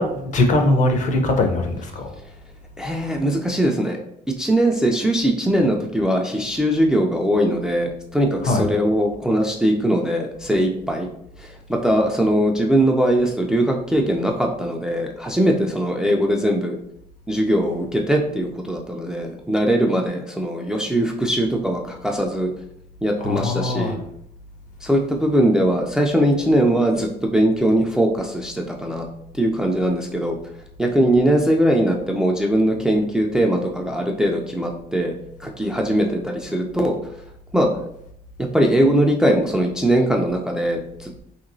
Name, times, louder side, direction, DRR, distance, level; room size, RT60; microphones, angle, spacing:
voice 1, 0.0-2.1 8.4-8.7 23.2-23.9, left 2 dB, 45° left, 4 dB, 0.6 m, -21 dB
voice 2, 2.8-4.0 4.4-11.1 11.4-16.8 17.3-22.5 23.0-24.0 24.8-29.1 29.3-30.4 30.8-35.1 35.4-37.1 37.5-37.7 38.5-41.2, right 1 dB, 5° right, 1 dB, 0.3 m, -20 dB
2.9 x 2.9 x 2.6 m, 0.74 s
cardioid pair, 110°, 17 cm